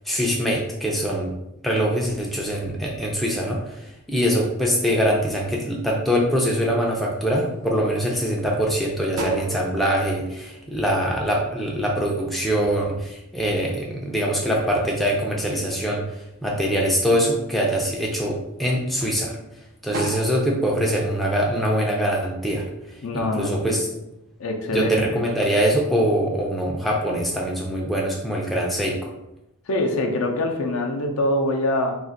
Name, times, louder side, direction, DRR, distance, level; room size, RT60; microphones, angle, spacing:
voice 1, 0.1-1.3 1.6-16.0 16.4-19.4 19.8-22.6 23.1-23.9 24.7-29.1, equal, ahead, -2 dB, 0.3 m, -23 dB
sound 1, 2.2-4.1 4.6-5.3 5.8-6.4 6.8-7.7 8.2-8.3 8.6-11.5 11.9-14.2 14.5-15.6 16.0-16.6 17.1-17.3 17.8-19.5 19.8-20.5, right 1 dB, 65° right, 0.5 m, -36 dB
voice 2, 23.0-23.9 24.4-25.3 29.7-31.9, left 1 dB, 70° left, 3 dB, 0.5 m, -24 dB
2.5 x 2.4 x 3.8 m, 0.87 s
head